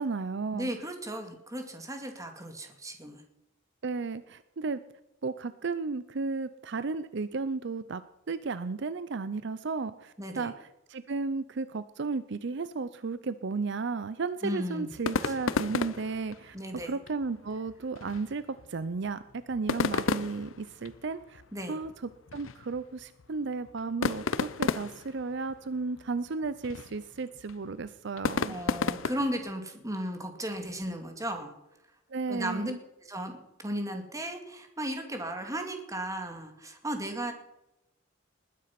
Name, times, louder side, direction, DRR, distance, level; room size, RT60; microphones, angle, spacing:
voice 1, 0.0-0.7 3.8-4.8 5.2-8.0 8.3-16.6 16.8-18.4 18.7-21.4 21.7-21.9 22.3-28.6 32.1-32.8, right 4 dB, 60° right, 14 dB, 0.6 m, -34 dB
voice 2, 0.5-3.2 10.2-10.5 14.4-14.9 15.2-15.3 16.5-17.0 21.5-21.8 28.4-31.5 32.3-32.7 33.1-37.3, equal, 15° right, 5 dB, 2.2 m, -35 dB
sound 1, 14.9-29.5, left 4 dB, 85° left, 0.7 m, -34 dB
20.0 x 9.7 x 5.9 m, 0.90 s
head